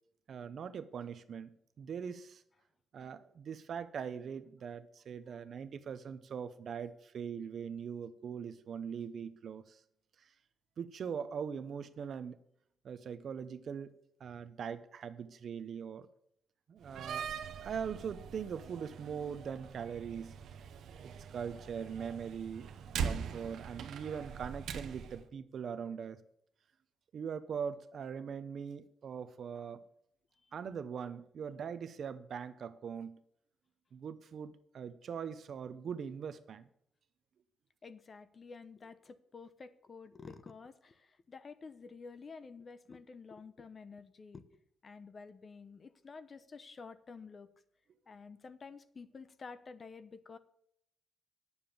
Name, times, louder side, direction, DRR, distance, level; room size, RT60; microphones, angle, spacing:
voice 1, 0.3-2.4 2.9-9.8 10.8-12.4 12.8-13.9 14.2-16.1 16.7-17.3 17.6-20.4 21.0-22.7 23.0-26.2 27.1-29.8 30.5-33.2 33.9-36.7, right 7 dB, 55° right, 0.8 m, -41 dB
Slam, 16.8-25.2, right 6 dB, 80° right, 1.0 m, -42 dB
voice 2, 37.8-47.5 48.1-50.4, left 4 dB, 35° left, 0.8 m, -51 dB
9.7 x 7.1 x 7.1 m
cardioid pair, 140°, 0 cm